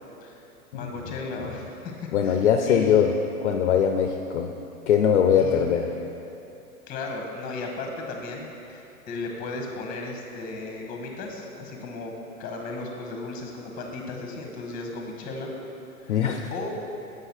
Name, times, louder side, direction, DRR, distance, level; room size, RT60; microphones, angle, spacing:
voice 1, 0.7-3.2 5.3-5.7 6.9-12.1 12.4-15.5 16.0-16.2 16.5-16.7, left 3 dB, 20° left, 1 dB, 0.9 m, -35 dB
voice 2, 2.1-3.1 3.4-4.5 4.9-5.9 16.1-16.5, left 8 dB, 55° left, 4 dB, 0.5 m, -21 dB
7.8 x 5.0 x 4.3 m, 2.9 s
figure-of-eight pair, 105°, 44 cm